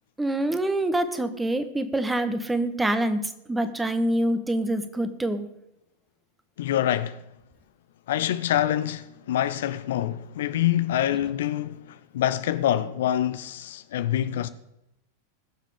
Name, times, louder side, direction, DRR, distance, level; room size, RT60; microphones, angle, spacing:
voice 1, 0.2-3.2 3.5-5.5, right 1 dB, 10° right, 1.3 m, -25 dB
voice 2, 6.6-7.2 8.1-14.5, left 11 dB, 60° left, 0.6 m, -26 dB
20.5 x 7.4 x 5.1 m
figure-of-eight pair, 90°, 0 cm